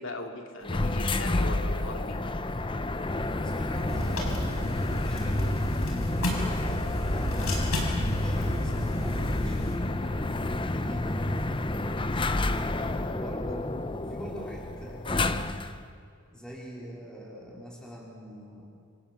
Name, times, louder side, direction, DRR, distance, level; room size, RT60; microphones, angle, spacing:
voice 1, 0.0-2.2, left 2 dB, 65° left, 3 dB, 2.5 m, -38 dB
sound 1, 0.6-15.8, left 2 dB, 25° left, 0.7 m, -30 dB
voice 2, 3.4-5.6 6.1-9.7 10.6-11.7 12.4-15.5 16.3-18.7, equal, 5° left, -4 dB, 3.6 m, -43 dB
sound 2, 3.9-9.8, left 1 dB, 85° left, 5.5 m, -32 dB
28.0 x 26.5 x 7.2 m, 2.4 s
head